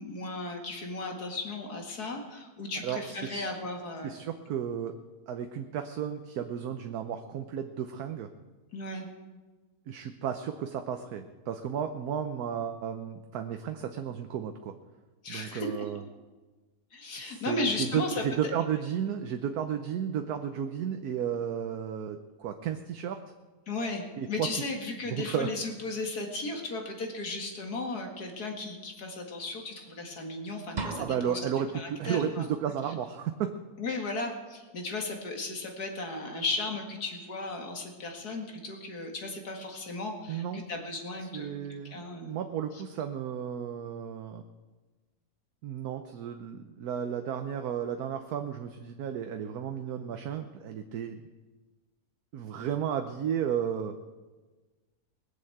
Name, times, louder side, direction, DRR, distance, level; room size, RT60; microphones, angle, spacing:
voice 1, 0.0-4.2 8.7-9.1 15.2-15.9 16.9-18.5 23.7-31.4 31.7-32.4 33.8-41.5 41.9-42.4, left 2 dB, 80° left, 2 dB, 2.5 m, -35 dB
voice 2, 2.8-3.5 4.0-5.0 5.3-8.3 9.9-14.7 15.3-16.0 17.2-23.3 24.2-24.5 25.0-25.5 31.0-33.5 40.3-40.6 41.2-44.4 45.6-51.2 52.3-53.9, right 8 dB, 75° right, 7 dB, 1.3 m, -33 dB
sound 1, 30.8-31.7, right 4 dB, 40° right, 0.7 m, -37 dB
20.5 x 7.5 x 7.8 m, 1.3 s
omnidirectional pair, 1.6 m